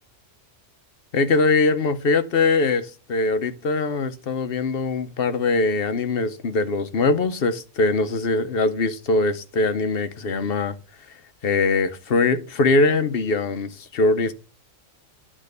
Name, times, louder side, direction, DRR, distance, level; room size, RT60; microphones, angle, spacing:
voice 1, 1.1-10.8 11.4-14.3, left 3 dB, 55° left, 0.9 m, -22 dB
9.9 x 3.6 x 6.5 m
omnidirectional pair, 1.3 m